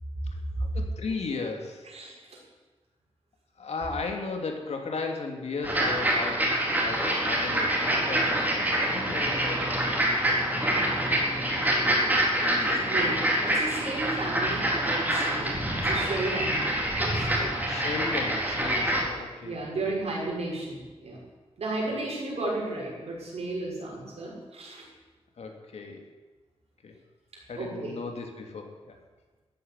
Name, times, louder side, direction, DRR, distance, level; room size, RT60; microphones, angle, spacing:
voice 1, 0.6-1.9 3.6-12.1 12.4-12.8 17.6-19.9 25.4-26.1 26.8-27.0 27.5-29.0, left 4 dB, 80° left, 3 dB, 2.7 m, -36 dB
voice 2, 1.9-2.4 12.8-15.6 15.9-16.8 17.1-17.6 19.4-21.2 21.6-24.9 27.6-28.0, right 2 dB, 75° right, -3 dB, 6.3 m, -33 dB
sound 1, 5.6-19.0, right 1 dB, 15° right, 3.8 m, -26 dB
14.5 x 9.6 x 9.7 m, 1.3 s
wide cardioid pair, 140°, 11 cm